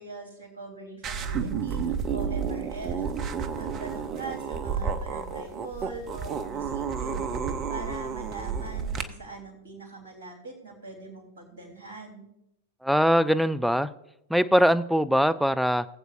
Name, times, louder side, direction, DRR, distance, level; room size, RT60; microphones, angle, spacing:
voice 1, 0.0-12.3, right 3 dB, 65° right, 1 dB, 3.7 m, -42 dB
sound 1, 1.0-9.0, right 6 dB, 30° right, 0.8 m, -31 dB
voice 2, 12.8-13.9 14.3-15.9, equal, ahead, 13 dB, 0.4 m, -22 dB
19.0 x 8.0 x 2.6 m, 0.82 s
figure-of-eight pair, 95°, 0 cm